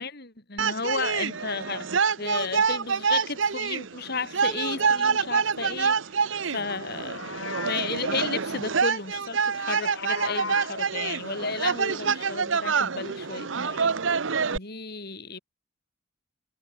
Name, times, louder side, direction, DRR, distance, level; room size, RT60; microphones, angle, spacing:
voice 1, 0.0-6.0 6.5-7.2 7.6-13.9 14.5-15.4, left 4 dB, 55° left, 4.5 m, -33 dB
sound 1, 0.6-14.6, right 5 dB, 80° right, 1.0 m, -27 dB
Livestock farm animals working animals, 6.9-8.0 9.3-10.8, left 5 dB, 80° left, 3.2 m, -37 dB
head